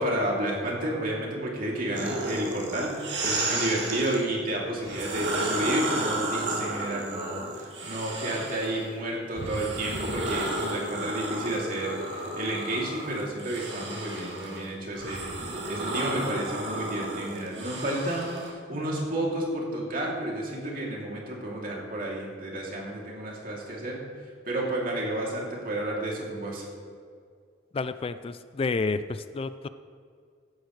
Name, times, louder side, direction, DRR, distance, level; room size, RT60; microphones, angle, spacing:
voice 1, 0.0-24.1 24.5-26.6, right 1 dB, 50° right, -3 dB, 2.9 m, -31 dB
sound 1, 1.9-4.2 4.8-8.9 9.3-18.5, right 2 dB, 80° right, 2.2 m, -32 dB
voice 2, 27.7-29.7, left 4 dB, 30° left, 12 dB, 0.3 m, -30 dB
15.5 x 11.5 x 3.3 m, 2.2 s
head